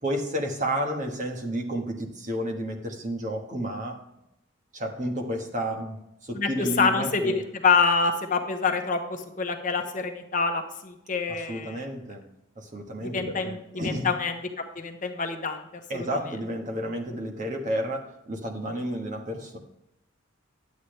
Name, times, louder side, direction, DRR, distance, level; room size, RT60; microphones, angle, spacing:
voice 1, 0.0-4.0 4.7-7.4 11.3-12.2 12.5-14.1 15.9-19.6, equal, 40° right, 1 dB, 1.5 m, -31 dB
voice 2, 6.8-7.3 7.6-9.0 9.4-11.8 13.0-13.6 13.8-14.3 14.7-15.6 15.9-16.1, left 4 dB, 40° left, 5 dB, 0.9 m, -26 dB
11.0 x 8.4 x 3.3 m, 0.84 s
head